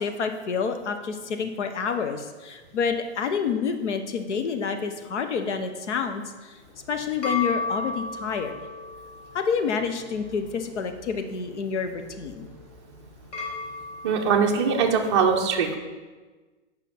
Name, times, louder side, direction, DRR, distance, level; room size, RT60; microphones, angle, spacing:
voice 1, 0.0-6.6 6.9-8.6 9.3-12.5, left 6 dB, 80° left, 7 dB, 0.9 m, -28 dB
sound 1, 6.6-15.1, left 3 dB, 35° left, 1.3 m, -36 dB
voice 2, 14.0-15.8, right 6 dB, 25° right, 0 dB, 0.5 m, -22 dB
7.2 x 5.3 x 4.3 m, 1.3 s
hypercardioid pair, 165°, 35 cm